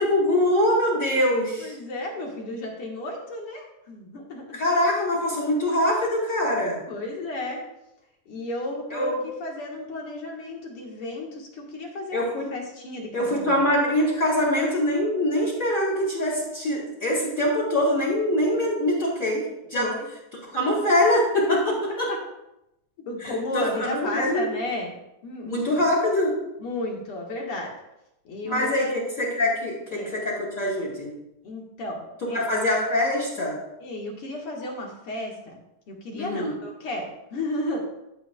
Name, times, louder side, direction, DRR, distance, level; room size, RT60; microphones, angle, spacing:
voice 1, 0.0-1.8 4.5-6.8 8.9-9.1 12.1-12.5 13.1-19.9 20.5-22.1 23.2-24.5 25.4-26.4 28.4-31.1 32.3-33.6 36.1-36.5, left 1 dB, 25° left, -4 dB, 3.4 m, -23 dB
voice 2, 1.6-4.6 6.9-7.6 8.3-13.6 19.8-20.1 21.9-22.2 23.0-24.9 25.2-25.5 26.6-27.7 28.2-28.9 29.9-30.1 31.4-32.4 33.8-35.6 35.9-37.8, left 2 dB, 50° left, -1 dB, 2.3 m, -33 dB
15.0 x 8.4 x 2.4 m, 0.87 s
omnidirectional pair, 3.7 m